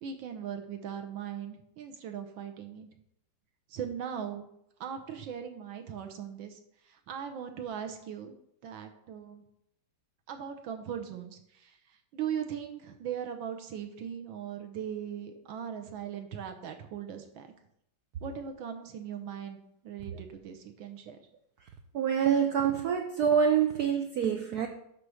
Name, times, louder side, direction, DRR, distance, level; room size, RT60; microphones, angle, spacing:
voice 1, 0.0-2.9 3.7-4.5 4.8-8.3 8.6-9.4 10.3-17.5 18.2-19.6 19.8-21.2, right 8 dB, 70° right, 5 dB, 1.5 m, -39 dB
voice 2, 21.9-24.7, right 7 dB, 90° right, 5 dB, 0.8 m, -26 dB
9.5 x 3.2 x 6.3 m, 0.76 s
omnidirectional pair, 2.3 m